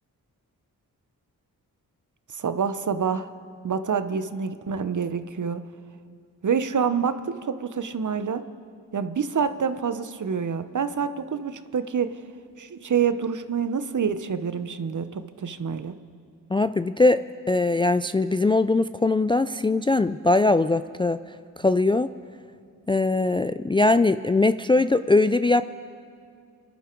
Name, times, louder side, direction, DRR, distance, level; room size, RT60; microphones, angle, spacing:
voice 1, 2.3-3.3 3.6-5.6 6.4-8.4 8.9-12.1 12.6-15.9, right 6 dB, 50° right, 11 dB, 0.9 m, -27 dB
voice 2, 16.5-21.2 21.6-22.1 22.9-25.6, left 2 dB, 15° left, 12 dB, 0.3 m, -21 dB
26.0 x 11.5 x 4.6 m, 2.2 s
cardioid pair, 50°, 38 cm